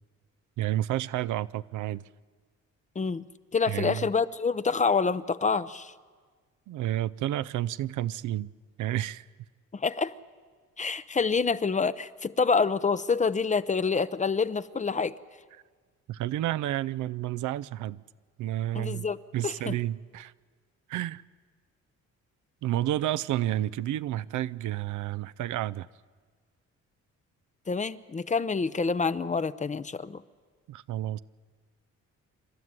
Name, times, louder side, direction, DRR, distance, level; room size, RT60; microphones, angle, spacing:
voice 1, 0.6-2.0 3.7-4.1 6.7-8.5 8.8-9.2 16.1-18.0 18.4-19.1 19.3-20.3 20.9-21.2 22.6-25.9 30.7-31.2, right 13 dB, 80° right, 0.6 m, -30 dB
voice 2, 3.5-5.9 9.7-10.1 10.8-15.2 18.7-19.2 19.4-19.7 27.7-30.2, left 5 dB, 25° left, 0.7 m, -27 dB
28.0 x 13.0 x 9.6 m
cardioid pair, 90°, 30 cm